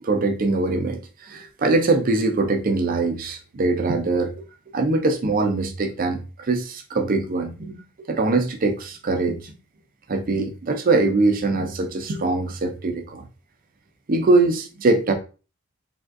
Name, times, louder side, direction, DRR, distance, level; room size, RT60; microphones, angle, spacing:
voice 1, 0.0-4.3 4.7-7.8 8.1-9.5 10.1-13.2 14.1-15.1, right 3 dB, 45° right, 0.5 m, -22 dB
3.4 x 2.4 x 2.4 m
head